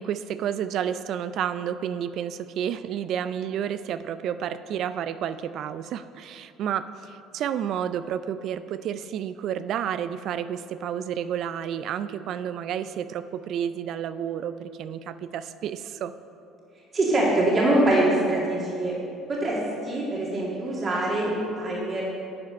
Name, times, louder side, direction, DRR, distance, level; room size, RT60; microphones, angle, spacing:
voice 1, 0.0-16.1, right 9 dB, 60° right, 13 dB, 0.3 m, -30 dB
voice 2, 16.9-18.9 19.3-22.0, right 1 dB, 40° right, -4 dB, 2.1 m, -24 dB
10.5 x 5.2 x 5.3 m, 2.7 s
hypercardioid pair, 70°, 0 cm